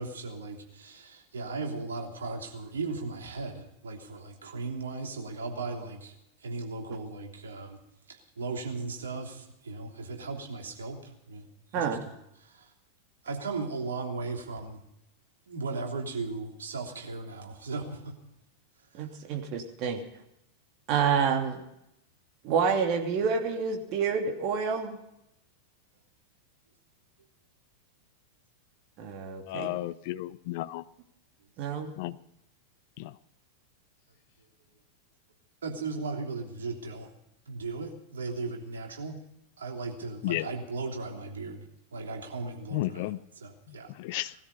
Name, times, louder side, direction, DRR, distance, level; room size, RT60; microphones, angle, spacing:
voice 1, 0.0-6.1 6.4-7.8 8.1-11.5 11.7-12.7 13.2-14.8 15.5-18.1 18.9-19.1 35.6-37.1 37.5-39.2 39.6-41.6 41.9-43.9, right 3 dB, 70° right, 2 dB, 3.2 m, -37 dB
voice 2, 18.9-20.0 20.9-21.6 22.4-25.0 29.0-29.7 31.6-32.0, right 6 dB, 40° right, 3 dB, 3.0 m, -28 dB
voice 3, 29.5-30.8 32.0-32.2 33.0-33.1 40.2-40.5 42.7-43.2 43.7-44.3, left 17 dB, 50° left, 17 dB, 0.6 m, -33 dB
19.5 x 13.0 x 5.5 m, 0.81 s
figure-of-eight pair, 90°, 0 cm